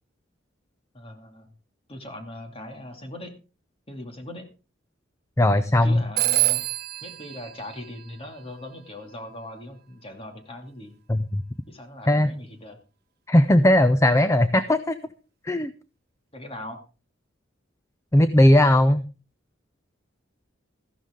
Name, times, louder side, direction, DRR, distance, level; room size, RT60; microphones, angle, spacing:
voice 1, 0.9-1.5 1.9-3.4 3.9-4.5 5.8-6.6 7.0-10.9 11.7-12.8 16.3-16.8, left 1 dB, 30° left, 4 dB, 2.5 m, -39 dB
voice 2, 5.4-6.0 11.1-11.4 12.1-12.3 13.3-15.0 15.4-15.7 18.1-19.0, left 1 dB, 15° left, 12 dB, 0.6 m, -18 dB
Telephone, 6.2-8.7, right 16 dB, 55° right, 1.0 m, -27 dB
14.5 x 12.0 x 3.7 m, 0.34 s
head